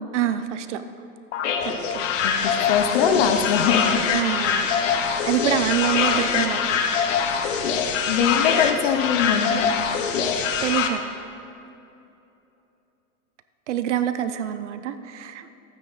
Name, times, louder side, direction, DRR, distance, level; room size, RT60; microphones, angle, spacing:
voice 1, 0.1-0.8 1.6-2.1 4.1-6.8 10.6-11.0 13.7-15.5, right 10 dB, 50° right, 11 dB, 0.6 m, -26 dB
sound 1, 1.3-10.9, left 6 dB, 55° left, 1.0 m, -23 dB
voice 2, 2.2-4.0 8.1-9.7, left 7 dB, 35° left, 7 dB, 0.7 m, -22 dB
12.5 x 9.1 x 3.9 m, 2.8 s
supercardioid pair, 160°, 45 cm